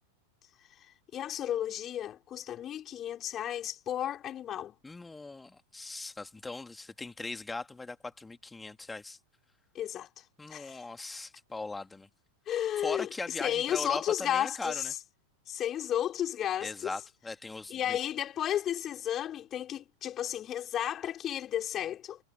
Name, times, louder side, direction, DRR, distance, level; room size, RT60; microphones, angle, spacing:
voice 1, 1.1-4.8 9.7-10.2 10.5-10.8 12.5-13.1 13.4-14.9 15.5-16.9 17.7-22.2, left 11 dB, 30° left, 5.3 m, -33 dB
voice 2, 4.8-9.2 10.4-12.1 12.8-14.9 16.6-18.0, left 3 dB, 10° left, 2.8 m, -39 dB
figure-of-eight pair, 90°, 0 cm